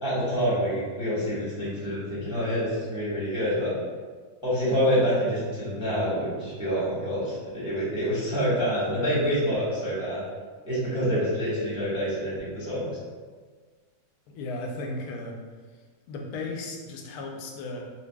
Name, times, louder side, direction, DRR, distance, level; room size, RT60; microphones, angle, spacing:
voice 1, 0.0-3.7 4.4-10.2 10.6-12.8, equal, 5° right, -10 dB, 0.9 m, -27 dB
voice 2, 14.3-15.4 16.1-17.8, left 2 dB, 70° left, 0 dB, 0.9 m, -35 dB
3.9 x 2.5 x 2.3 m, 1.5 s
omnidirectional pair, 1.9 m